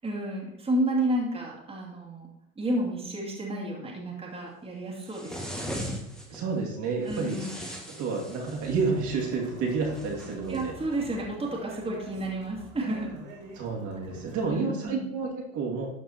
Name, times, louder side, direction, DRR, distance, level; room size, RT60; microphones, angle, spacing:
voice 1, 0.0-2.3 2.6-5.7 7.1-7.5 10.5-13.1 14.5-15.0, right 1 dB, 15° right, -2 dB, 2.4 m, -31 dB
sound 1, 5.1-6.4 7.1-8.9 9.9-10.7, equal, ahead, 1.6 m, -38 dB
voice 2, 6.3-7.5 7.9-10.7 13.5-15.9, right 4 dB, 45° right, -1 dB, 2.7 m, -30 dB
sound 2, 8.4-14.5, right 2 dB, 70° right, 3.5 m, -45 dB
13.0 x 4.6 x 4.4 m, 0.81 s
hypercardioid pair, 90°, 40 cm